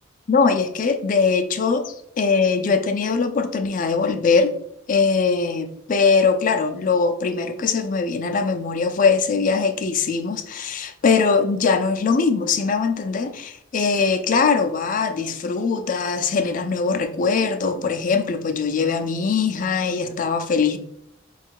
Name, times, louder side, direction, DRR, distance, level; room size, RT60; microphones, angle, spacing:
voice 1, 0.3-4.5 4.9-20.8, left 5 dB, 40° left, 0.4 m, -21 dB
4.4 x 2.3 x 4.4 m
head